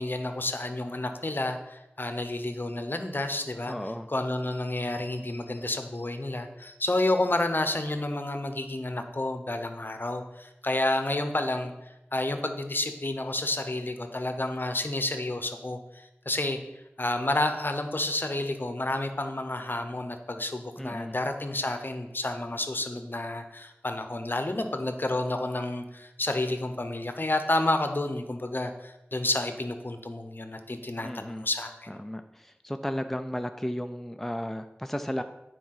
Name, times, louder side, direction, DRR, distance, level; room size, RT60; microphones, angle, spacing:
voice 1, 0.0-3.7 4.1-11.7 12.1-16.6 17.0-31.9, left 2 dB, 45° left, 7 dB, 0.9 m, -30 dB
voice 2, 3.7-4.1 20.8-21.2 31.0-31.5 31.9-35.2, equal, 5° left, 7 dB, 0.5 m, -34 dB
9.2 x 4.7 x 5.8 m, 0.94 s
wide cardioid pair, 50°, 5 cm